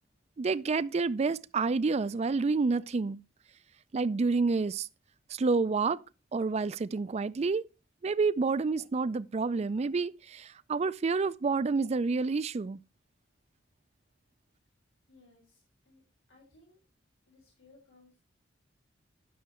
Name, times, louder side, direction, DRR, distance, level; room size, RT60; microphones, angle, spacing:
voice 1, 0.4-3.2 3.9-4.9 5.3-6.0 6.3-7.6 8.0-12.8, right 4 dB, 35° right, 0.4 m, -29 dB
voice 2, 15.1-16.8 17.3-18.2, left 2 dB, 90° left, 3.7 m, -61 dB
10.0 x 6.4 x 4.3 m
head